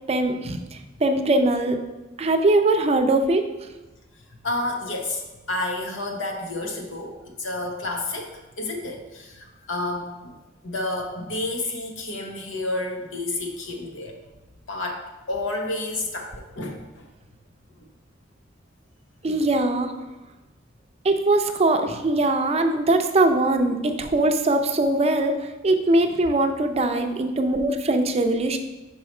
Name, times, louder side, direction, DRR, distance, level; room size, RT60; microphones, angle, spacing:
voice 1, 0.1-1.8 2.2-3.5 19.2-19.9 21.0-28.6, right 2 dB, 35° right, 6 dB, 0.5 m, -21 dB
voice 2, 4.4-10.4 10.6-14.2 14.7-17.1, left 2 dB, 85° left, 2 dB, 1.0 m, -30 dB
5.4 x 4.7 x 4.3 m, 1.1 s
head